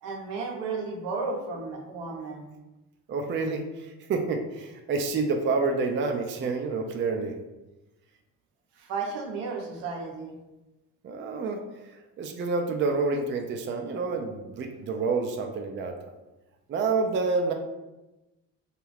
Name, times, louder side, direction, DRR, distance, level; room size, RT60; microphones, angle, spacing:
voice 1, 0.0-2.4 8.8-10.4, right 4 dB, 75° right, 2 dB, 0.7 m, -33 dB
voice 2, 3.1-7.3 11.0-16.0 16.7-17.5, right 4 dB, 30° right, 4 dB, 0.4 m, -28 dB
2.4 x 2.3 x 3.2 m, 1.0 s
hypercardioid pair, 50°, 41 cm